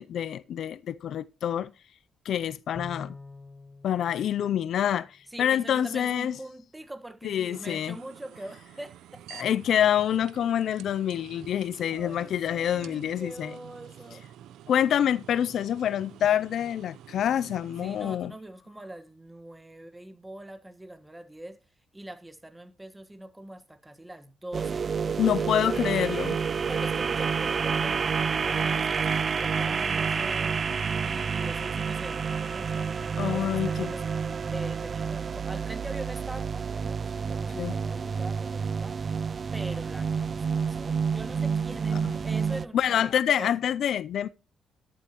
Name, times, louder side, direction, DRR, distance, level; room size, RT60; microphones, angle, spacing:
voice 1, 0.0-1.7 2.3-3.1 3.8-6.4 7.2-8.0 9.3-13.5 14.7-18.3 25.2-26.4 33.2-33.9 37.5-37.7 42.0-42.1 42.7-44.3, left 10 dB, 70° left, 0.5 m, -27 dB
Bowed string instrument, 2.7-5.4, left 3 dB, 25° left, 1.7 m, -46 dB
voice 2, 3.8-4.5 5.3-9.7 11.8-14.2 17.8-21.6 21.9-26.2 26.7-30.5 31.0-34.0 34.5-43.5, right 1 dB, 10° right, 1.4 m, -43 dB
sound 1, 7.5-18.2, right 11 dB, 80° right, 0.6 m, -49 dB
sound 2, 24.5-42.7, right 6 dB, 40° right, 0.4 m, -29 dB
12.0 x 11.5 x 3.0 m
cardioid pair, 90°, 0 cm